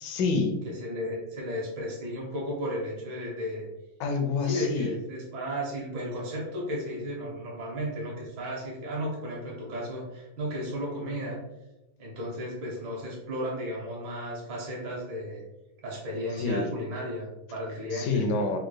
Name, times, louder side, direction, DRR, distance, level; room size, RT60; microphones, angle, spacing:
voice 1, 0.0-0.5 4.0-4.9 16.4-16.7 17.9-18.6, left 4 dB, 75° left, 5 dB, 1.2 m, -27 dB
voice 2, 0.6-3.7 4.4-11.4 12.0-15.4 15.8-18.3, equal, 80° right, -4 dB, 1.8 m, -34 dB
4.4 x 2.2 x 3.2 m, 0.95 s
omnidirectional pair, 2.1 m